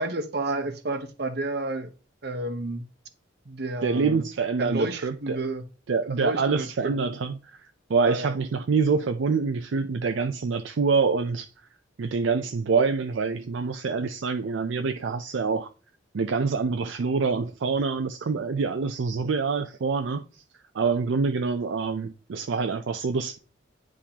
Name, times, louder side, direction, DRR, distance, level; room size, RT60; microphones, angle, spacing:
voice 1, 0.0-1.9 2.2-2.9 3.5-4.2 4.6-5.6 6.1-6.9 8.1-8.3, right 2 dB, 55° right, 0.8 m, -31 dB
voice 2, 3.8-5.4 5.9-11.5 12.0-15.7 16.1-20.2 20.7-23.4, right 4 dB, 75° right, 0.4 m, -26 dB
9.9 x 3.7 x 2.9 m
head